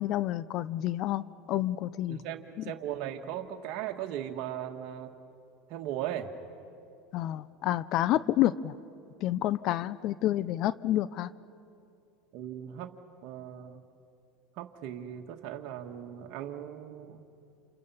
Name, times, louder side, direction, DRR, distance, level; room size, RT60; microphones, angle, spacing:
voice 1, 0.0-2.2 7.1-8.7 9.2-11.3, left 13 dB, 50° left, 17 dB, 0.6 m, -29 dB
voice 2, 2.1-5.1 5.7-6.3 12.3-12.9 13.2-13.8 14.6-17.2, right 11 dB, 60° right, 3 dB, 1.6 m, -38 dB
29.5 x 28.5 x 5.7 m, 2.6 s
supercardioid pair, 110°, 0 cm